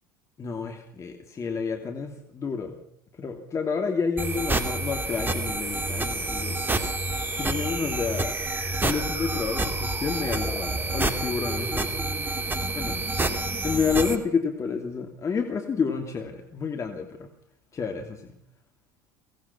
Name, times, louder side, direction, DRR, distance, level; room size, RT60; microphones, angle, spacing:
voice 1, 0.4-2.8 3.2-6.6 7.3-8.4 8.8-11.9 12.8-13.0 13.6-17.3 17.7-18.3, left 5 dB, 30° left, 4 dB, 2.8 m, -29 dB
sound 1, 4.2-14.2, right 2 dB, 20° right, 2.8 m, -28 dB
24.0 x 18.5 x 5.9 m, 0.69 s
figure-of-eight pair, 75°, 11 cm